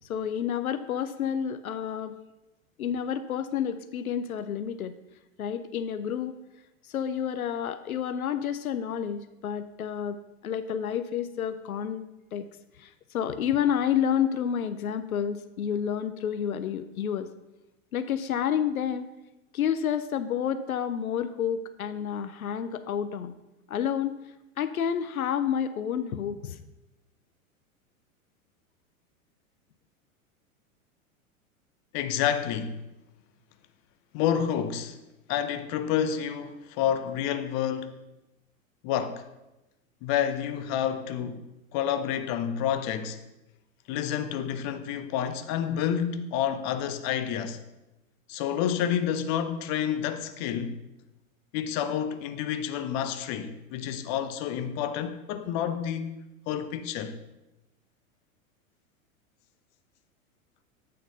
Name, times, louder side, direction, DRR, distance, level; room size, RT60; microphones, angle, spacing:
voice 1, 0.1-2.1 2.8-4.9 5.4-6.4 6.9-12.0 12.3-12.5 12.8-17.3 17.9-19.1 19.5-23.3 23.7-24.1 24.6-26.6, left 8 dB, 80° left, 0.6 m, -29 dB
voice 2, 31.9-32.9 34.1-35.0 35.3-37.9 38.8-39.3 40.0-41.4 41.7-43.2 43.9-47.6 48.3-50.7 51.5-56.2 56.5-57.2, left 9 dB, 40° left, 0.7 m, -29 dB
8.4 x 3.8 x 6.4 m
figure-of-eight pair, 95°, 42 cm